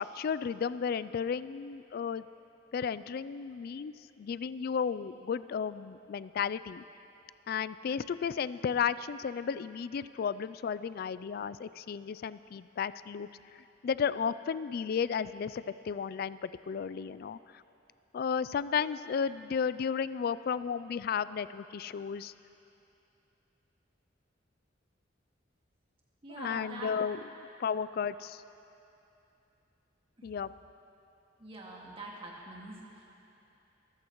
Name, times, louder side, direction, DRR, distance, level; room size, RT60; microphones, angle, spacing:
voice 1, 0.0-2.2 2.7-6.8 7.5-13.3 13.8-17.4 18.1-22.3 26.3-27.2 27.6-28.4 30.2-30.5, left 6 dB, 55° left, 16 dB, 0.3 m, -33 dB
voice 2, 26.2-26.9 30.2-30.4 31.4-33.0, right 2 dB, 30° right, -3 dB, 2.0 m, -45 dB
23.0 x 14.5 x 3.0 m, 2.9 s
head